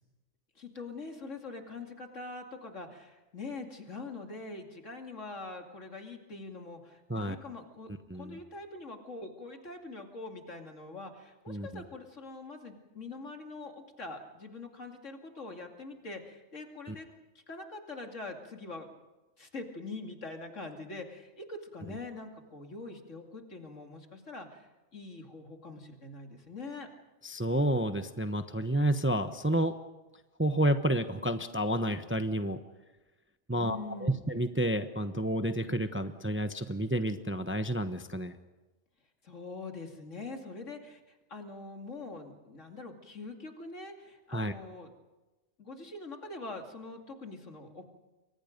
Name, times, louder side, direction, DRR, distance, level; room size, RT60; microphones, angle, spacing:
voice 1, 0.6-17.1 17.5-18.9 19.4-26.9 33.5-34.2 39.2-44.9 45.6-47.8, left 3 dB, 70° left, 3 dB, 2.9 m, -44 dB
voice 2, 11.5-11.8 16.9-17.0 27.2-29.7 30.4-32.6 33.5-38.3 44.3-44.5, right 1 dB, 10° right, 8 dB, 0.8 m, -30 dB
29.0 x 23.5 x 5.2 m, 1.1 s
omnidirectional pair, 1.3 m